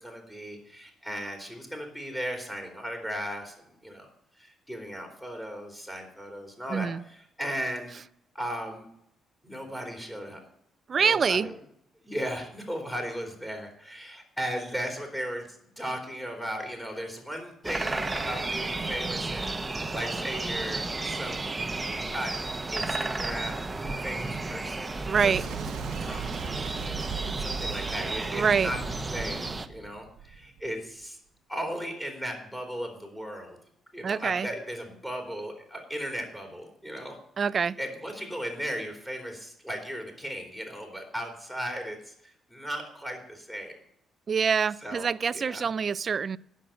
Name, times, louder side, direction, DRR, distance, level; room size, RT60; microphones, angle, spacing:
voice 1, 0.0-3.5 3.8-4.1 4.3-7.9 8.3-8.8 9.4-10.4 10.9-11.5 12.0-15.5 15.8-21.8 22.1-22.4 22.7-23.7 24.0-24.9 25.2-25.6 26.0-28.8 29.1-31.2 31.5-33.6 33.9-37.2 37.8-43.8 44.8-45.1 45.3-45.7, equal, 10° left, 2 dB, 3.3 m, -36 dB
voice 2, 6.7-7.0 10.9-11.5 25.1-25.4 28.3-28.7 34.0-34.5 37.4-37.8 44.3-46.4, right 6 dB, 45° right, 19 dB, 0.4 m, -25 dB
sound 1, 17.6-29.7, right 3 dB, 20° right, 0.9 m, -33 dB
Boom, 25.1-30.7, right 6 dB, 80° right, 1.0 m, -38 dB
10.0 x 6.4 x 8.9 m, 0.71 s
cardioid pair, 90°, 0 cm